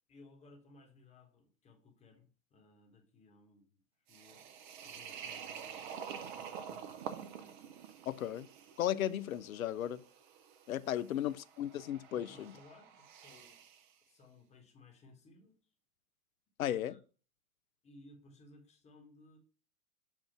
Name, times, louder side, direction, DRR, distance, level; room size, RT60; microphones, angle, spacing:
voice 1, 0.1-3.8 4.1-7.1 10.9-11.1 12.1-13.6 14.1-15.6 16.7-17.0 17.8-19.4, left 2 dB, 15° left, 1.1 m, -60 dB
sound 1, 4.1-13.9, right 7 dB, 35° right, 0.6 m, -48 dB
voice 2, 8.1-8.5 8.8-10.0 10.7-12.5 16.6-17.0, left 11 dB, 70° left, 0.5 m, -35 dB
7.2 x 2.4 x 5.6 m
figure-of-eight pair, 105°, 43 cm